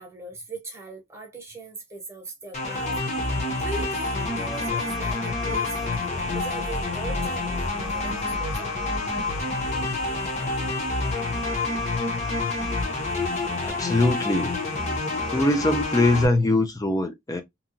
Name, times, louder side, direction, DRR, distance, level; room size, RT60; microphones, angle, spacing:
voice 1, 0.0-3.0 3.5-8.7, right 3 dB, 15° right, 1.0 m, -39 dB
sound 1, 2.5-16.2, left 2 dB, 30° left, 0.8 m, -28 dB
voice 2, 13.6-14.5 15.3-17.4, left 2 dB, 15° left, 0.4 m, -22 dB
2.9 x 2.3 x 2.5 m
head